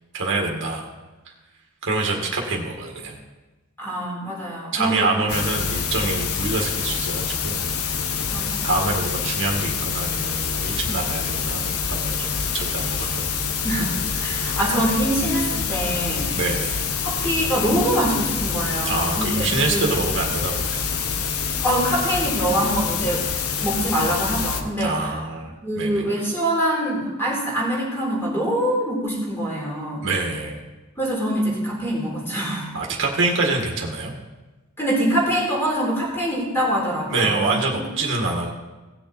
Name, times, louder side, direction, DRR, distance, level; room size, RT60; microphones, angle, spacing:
voice 1, 0.1-0.9 1.8-3.2 4.7-7.6 8.6-13.2 16.3-16.8 18.9-20.9 24.8-26.0 30.0-30.6 32.7-34.1 37.1-38.5, right 3 dB, 60° right, 0 dB, 1.8 m, -26 dB
voice 2, 3.8-5.1 8.3-8.7 13.6-16.3 17.0-20.0 21.6-23.3 23.6-25.2 25.6-30.1 31.0-32.7 34.8-37.5, right 1 dB, 10° left, -4 dB, 3.8 m, -24 dB
sound 1, 5.3-24.6, left 6 dB, 85° left, 0.9 m, -26 dB
17.5 x 6.9 x 4.3 m, 1.1 s
head